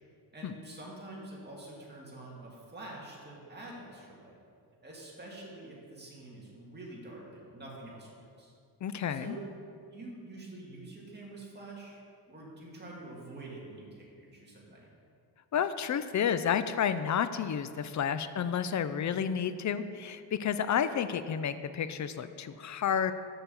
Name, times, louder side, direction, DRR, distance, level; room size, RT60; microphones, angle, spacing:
voice 1, 0.3-4.3 4.8-8.1 8.4-8.5 9.1-9.4 9.9-12.0 12.3-14.9, right 2 dB, 25° right, -4 dB, 2.0 m, -46 dB
voice 2, 8.8-9.4 15.5-23.1, left 8 dB, 45° left, 12 dB, 0.5 m, -31 dB
6.8 x 5.8 x 6.9 m, 2.3 s
cardioid pair, 105°, 41 cm